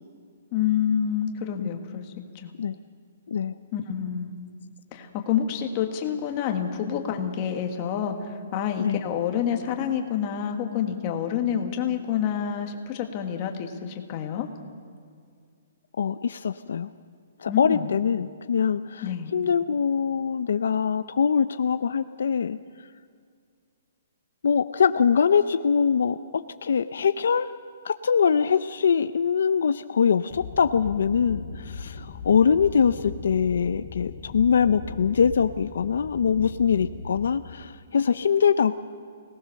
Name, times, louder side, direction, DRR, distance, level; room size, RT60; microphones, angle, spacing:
voice 1, 0.5-2.1 2.4-2.5 3.7-4.3 4.9-14.5 17.5-17.9 19.0-19.3, left 8 dB, 25° left, 4 dB, 1.5 m, -28 dB
voice 2, 16.0-16.9 17.4-19.0 19.3-22.6 24.4-27.5 27.8-38.8, left 6 dB, 70° left, 11 dB, 0.6 m, -23 dB
sound 1, 30.3-37.4, left 4 dB, 40° left, 2.6 m, -39 dB
25.0 x 18.5 x 6.5 m, 2.1 s
hypercardioid pair, 175°, 0 cm